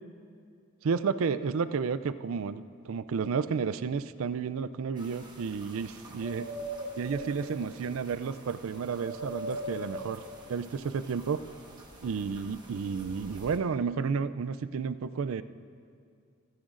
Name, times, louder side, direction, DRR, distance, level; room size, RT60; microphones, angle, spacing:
voice 1, 0.8-6.5 7.0-10.2 10.5-11.4 12.0-15.4, right 5 dB, 70° right, 13 dB, 0.4 m, -31 dB
sound 1, 5.0-13.6, right 1 dB, 20° right, 1.3 m, -43 dB
28.5 x 10.0 x 2.5 m, 2.2 s
head